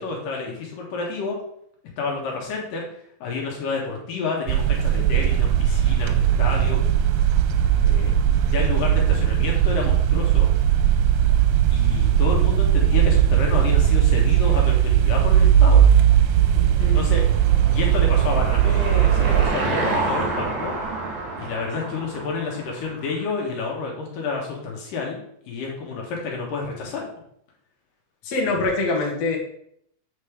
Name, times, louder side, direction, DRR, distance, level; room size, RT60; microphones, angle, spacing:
voice 1, 0.0-1.4 2.0-2.9 3.2-6.8 7.8-8.2 8.5-10.5 11.7-15.8 16.8-17.2 17.7-20.7 21.4-27.0, left 4 dB, 70° left, -1 dB, 2.9 m, -29 dB
sound 1, 4.5-19.5, right 10 dB, 90° right, 2.4 m, -18 dB
Car passing by / Engine, 16.5-23.3, right 2 dB, 65° right, 3.0 m, -29 dB
voice 2, 16.6-17.0 28.2-29.4, left 3 dB, 55° left, -1 dB, 2.5 m, -24 dB
8.0 x 5.3 x 5.0 m, 0.70 s
omnidirectional pair, 4.1 m